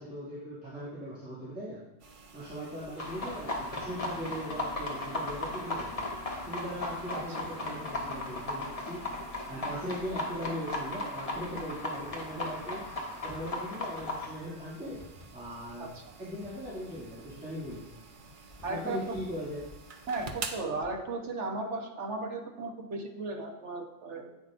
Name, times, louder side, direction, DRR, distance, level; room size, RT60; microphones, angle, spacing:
voice 1, 0.0-1.8 2.3-6.0 6.4-9.0 9.5-12.8 13.2-15.0 15.3-15.9 16.2-18.0 18.7-19.7, equal, 5° right, -11 dB, 2.3 m, -39 dB
sound 1, 2.0-20.6, right 4 dB, 50° right, 0.8 m, -50 dB
sound 2, 2.3-21.1, left 1 dB, 60° left, 2.1 m, -56 dB
sound 3, 3.0-14.3, left 2 dB, 30° left, 1.1 m, -36 dB
voice 2, 18.6-19.2 20.1-24.3, right 3 dB, 75° right, 3 dB, 1.4 m, -35 dB
9.6 x 8.6 x 2.5 m, 0.98 s
omnidirectional pair, 1.2 m